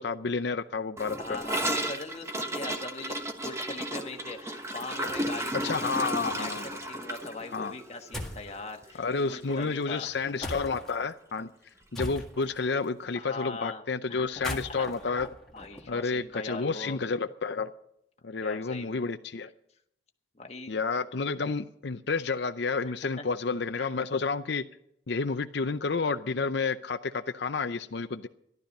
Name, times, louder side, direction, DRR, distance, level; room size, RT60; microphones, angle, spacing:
voice 1, 0.0-1.4 5.6-6.7 7.5-7.7 9.0-11.5 11.9-15.3 15.9-17.7 18.2-19.5 20.7-24.6 25.1-28.3, left 4 dB, 65° left, 11 dB, 0.6 m, -30 dB
Gurgling / Toilet flush, 1.0-9.2 9.5-9.6 9.9-10.4 10.6-10.7 11.0-11.1 12.1-12.2, right 1 dB, 15° right, 1.1 m, -34 dB
voice 2, 1.1-6.1 6.4-10.5 13.1-14.9 15.5-17.0 18.4-19.0 20.3-20.7 22.8-23.2 23.8-23.9, left 3 dB, 35° left, 3 dB, 1.4 m, -41 dB
sound 1, 8.1-8.5 10.4-10.9 11.9-12.6 14.2-16.2, left 1 dB, ahead, 1.8 m, -38 dB
14.5 x 12.0 x 5.4 m, 0.74 s
head